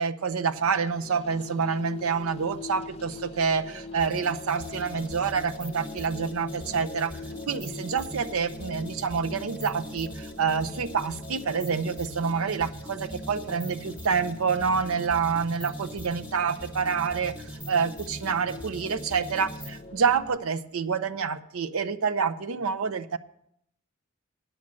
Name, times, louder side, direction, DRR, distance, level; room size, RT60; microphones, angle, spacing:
voice 1, 0.0-7.1 7.5-17.3 17.7-23.2, right 6 dB, 85° right, 13 dB, 0.6 m, -27 dB
sound 1, 0.6-20.4, left 2 dB, 30° left, 0.6 m, -42 dB
sound 2, 4.0-19.8, equal, 5° right, 1.0 m, -42 dB
9.6 x 7.5 x 7.5 m, 0.77 s
head